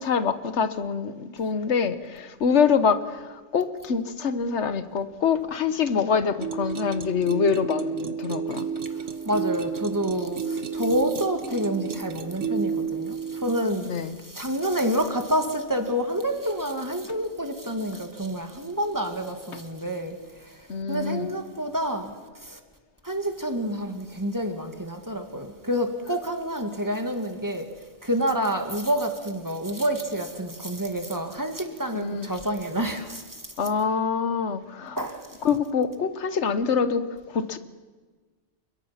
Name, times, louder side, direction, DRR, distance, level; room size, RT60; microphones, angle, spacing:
voice 1, 0.0-8.7 13.9-14.2 20.7-21.3 31.9-32.3 33.6-35.0 35.4-37.6, left 6 dB, 70° left, 1.5 m, -25 dB
sound 1, 6.4-13.6, right 6 dB, 85° right, 1.4 m, -31 dB
voice 2, 8.9-20.6 20.9-22.6 23.0-27.7 28.0-33.5 35.0-35.4, equal, 15° right, 2.1 m, -28 dB
29.5 x 21.5 x 5.9 m
omnidirectional pair, 1.2 m